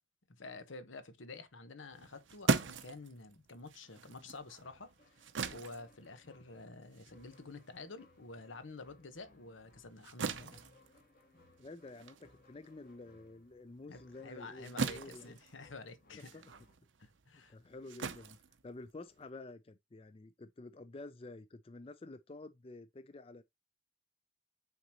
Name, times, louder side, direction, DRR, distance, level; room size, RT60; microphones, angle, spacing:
voice 1, 0.3-10.6 13.9-16.4 17.0-17.6, left 3 dB, 90° left, 1.1 m, -50 dB
sound 1, 1.9-8.7 9.1-19.3, right 4 dB, 80° right, 0.7 m, -40 dB
sound 2, 4.6-16.7, left 2 dB, 50° left, 2.0 m, -66 dB
voice 2, 11.6-15.3 16.3-16.4 17.3-18.4 18.6-23.4, left 2 dB, 30° left, 0.4 m, -50 dB
9.1 x 3.9 x 2.9 m
head